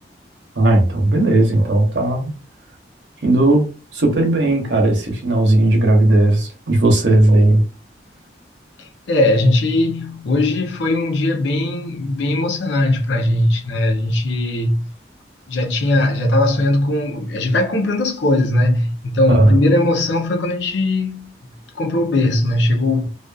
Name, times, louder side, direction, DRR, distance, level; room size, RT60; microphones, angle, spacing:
voice 1, 0.6-2.3 3.2-3.7 3.9-7.6 19.3-19.6, right 2 dB, 80° right, 0.9 m, -15 dB
voice 2, 8.8-14.9 15.5-21.3 21.7-23.1, left 1 dB, 85° left, 0.6 m, -19 dB
2.5 x 2.4 x 2.3 m
head